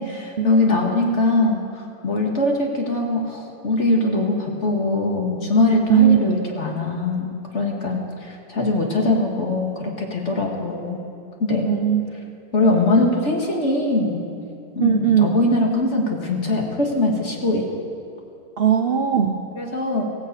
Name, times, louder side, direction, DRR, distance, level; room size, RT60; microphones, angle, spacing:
voice 1, 0.0-11.0 11.4-11.7 12.5-14.2 14.8-17.7 19.6-20.0, left 2 dB, 40° left, 0 dB, 2.2 m, -22 dB
voice 2, 5.9-6.4 11.7-12.1 14.8-15.4 18.6-19.4, right 9 dB, 60° right, 5 dB, 0.6 m, -18 dB
16.0 x 11.0 x 8.2 m, 2.7 s
omnidirectional pair, 2.0 m